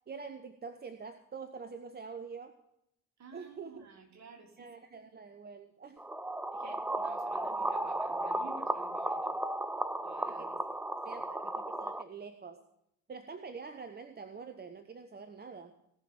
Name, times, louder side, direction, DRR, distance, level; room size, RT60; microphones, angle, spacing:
voice 1, 0.1-2.6 3.3-3.9 4.6-6.0 10.3-10.6 11.0-12.6 13.1-15.7, right 5 dB, 25° right, 9 dB, 0.9 m, -46 dB
voice 2, 3.2-4.7 6.5-9.3 10.0-10.6 11.0-11.2, right 4 dB, 40° right, 1 dB, 3.5 m, -53 dB
sound 1, 6.0-12.0, right 1 dB, 5° right, 0.5 m, -35 dB
18.0 x 6.0 x 6.3 m, 0.80 s
figure-of-eight pair, 50°, 42 cm